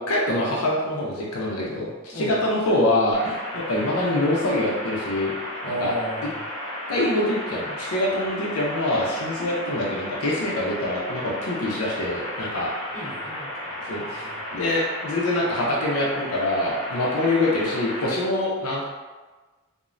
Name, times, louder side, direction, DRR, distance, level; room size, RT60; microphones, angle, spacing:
voice 1, 0.0-5.3 5.6-5.9 6.9-12.7 13.9-14.2 14.5-18.8, left 1 dB, 75° left, -4 dB, 0.5 m, -25 dB
sound 1, 3.1-18.1, left 1 dB, 30° left, 1.0 m, -34 dB
voice 2, 5.6-6.4 12.9-13.7 14.1-14.4, right 1 dB, 10° left, -11 dB, 1.3 m, -34 dB
3.0 x 2.0 x 2.4 m, 1.3 s
head